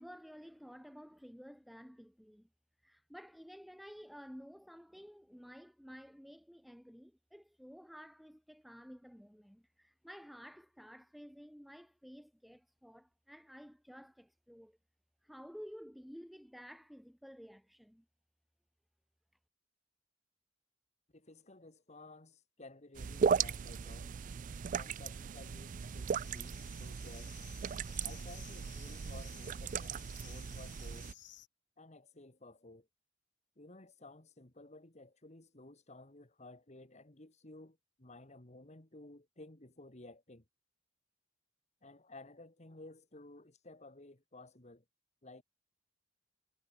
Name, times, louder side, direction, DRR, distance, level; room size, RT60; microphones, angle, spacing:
voice 1, 0.0-2.5 2.8-14.8 15.2-18.0, equal, ahead, 1.0 m, -53 dB
voice 2, 21.1-24.1 24.7-27.3 28.0-31.1 31.8-32.9 33.6-40.4 41.8-44.8 45.2-45.4, left 2 dB, 40° left, 2.3 m, -55 dB
sound 1, 22.9-31.1, right 6 dB, 45° right, 0.4 m, -37 dB
sound 2, 25.7-31.5, left 12 dB, 70° left, 3.1 m, -58 dB
head